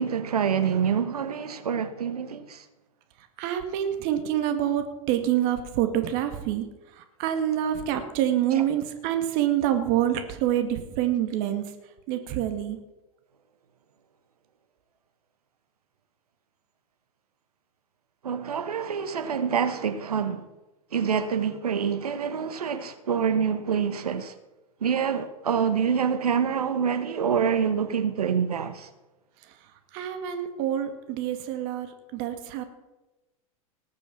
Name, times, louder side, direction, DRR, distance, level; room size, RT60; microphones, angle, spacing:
voice 1, 0.0-2.6 18.2-20.4 20.9-24.3 24.8-28.9, right 7 dB, 85° right, 1.3 m, -26 dB
voice 2, 3.4-6.7 6.9-11.7 12.1-12.8 29.9-32.6, right 11 dB, 50° right, 1.9 m, -26 dB
19.5 x 6.9 x 6.0 m
hypercardioid pair, 100°, 19 cm